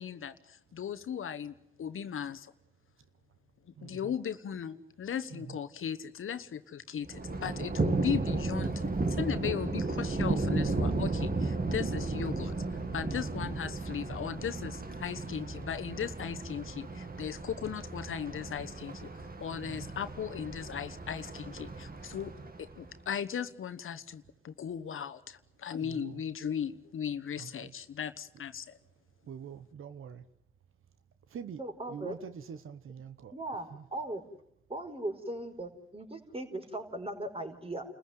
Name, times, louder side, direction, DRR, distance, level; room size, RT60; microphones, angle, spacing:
voice 1, 0.0-2.5 3.8-12.6 12.9-22.3 22.6-28.8, left 8 dB, 80° left, 12 dB, 1.1 m, -37 dB
voice 2, 3.8-4.1 5.3-5.6 12.3-12.9 19.6-20.0 22.4-22.5 25.8-26.2 27.4-27.7 29.3-30.2 31.3-31.6 31.9-33.3 33.7-33.8, right 7 dB, 80° right, 11 dB, 1.1 m, -45 dB
Thunder, 7.1-23.0, right 3 dB, 45° right, 2.3 m, -34 dB
voice 3, 31.6-32.2 33.3-34.2 34.7-37.8, right 1 dB, 25° right, 4 dB, 5.1 m, -38 dB
29.0 x 15.0 x 9.5 m, 0.74 s
supercardioid pair, 45°, 21 cm